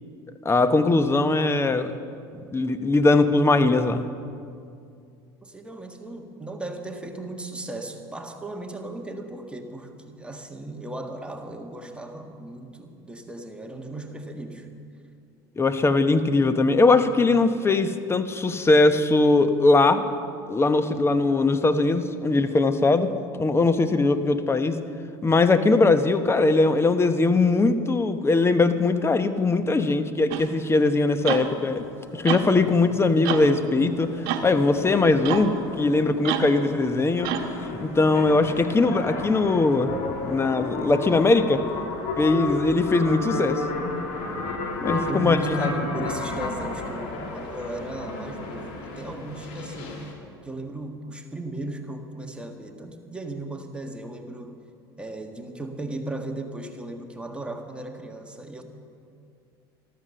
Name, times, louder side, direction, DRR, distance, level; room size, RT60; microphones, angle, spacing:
voice 1, 0.4-1.9 2.5-4.0 15.6-20.1 20.5-24.8 25.2-31.8 32.1-34.1 34.4-37.3 37.7-39.9 40.2-41.6 42.2-44.0 44.8-45.6, left 3 dB, 20° left, 10 dB, 1.0 m, -21 dB
voice 2, 5.4-14.7 38.6-38.7 44.9-50.0 50.4-54.6 55.0-58.6, right 2 dB, 10° right, 3 dB, 1.7 m, -36 dB
sound 1, 30.3-30.5 31.2-31.5 32.2-32.5 33.2-33.5 34.3-34.5 35.2-35.5 36.2-36.6 37.2-37.5, right 11 dB, 65° right, 1.1 m, -28 dB
sound 2, 31.4-50.1, left 3 dB, 65° left, 2.7 m, -33 dB
13.0 x 13.0 x 6.8 m, 2.4 s
hypercardioid pair, 80°, 13 cm